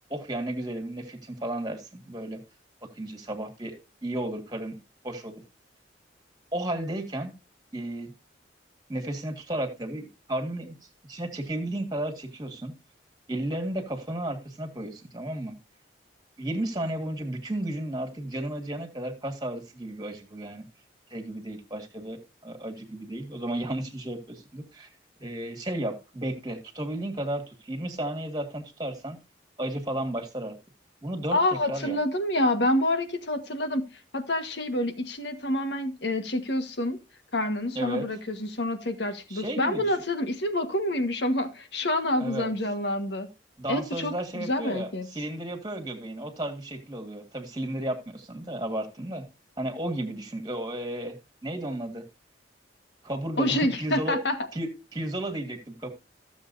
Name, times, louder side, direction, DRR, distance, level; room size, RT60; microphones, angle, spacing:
voice 1, 0.1-2.4 2.9-4.8 5.0-5.4 6.5-7.3 7.7-8.1 8.9-10.7 11.1-12.7 13.3-15.6 16.4-20.7 21.1-24.9 25.2-29.2 29.6-30.6 31.0-31.4 31.7-32.0 37.8-38.1 39.3-39.9 42.2-42.5 43.6-49.2 49.6-51.2 51.4-52.0 53.0-54.2 54.5-55.9, right 1 dB, 20° right, 2.1 m, -33 dB
voice 2, 31.3-33.8 34.1-37.0 37.3-43.3 43.7-45.1 53.4-54.4, left 1 dB, 70° left, 1.5 m, -27 dB
15.0 x 7.3 x 2.7 m
head